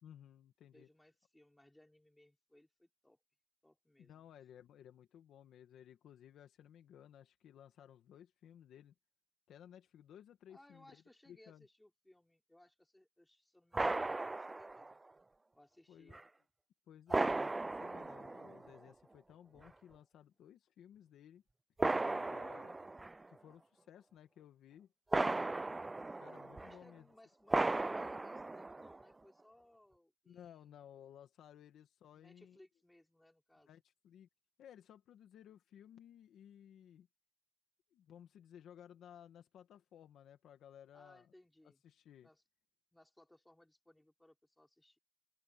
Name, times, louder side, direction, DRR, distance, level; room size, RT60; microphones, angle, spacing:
voice 1, 0.0-0.9 4.0-8.9 9.5-11.7 15.9-16.2 16.9-21.4 22.0-22.8 23.3-24.9 26.2-27.1 30.3-32.6 33.6-34.3 34.6-37.1 37.9-41.3 41.8-42.3, left 9 dB, 70° left, 1.8 m, -58 dB
voice 2, 0.7-3.2 3.6-4.3 10.5-15.0 15.5-16.2 26.5-30.8 32.1-33.8 40.9-41.8 42.2-42.4 42.9-45.0, left 1 dB, 5° left, 5.1 m, -65 dB
sound 1, 13.7-14.9 16.1-16.2 17.1-18.8 19.6-19.7 21.8-23.3 25.1-26.8 27.5-29.0, right 2 dB, 15° right, 0.3 m, -36 dB
open air
cardioid pair, 140°, 0 cm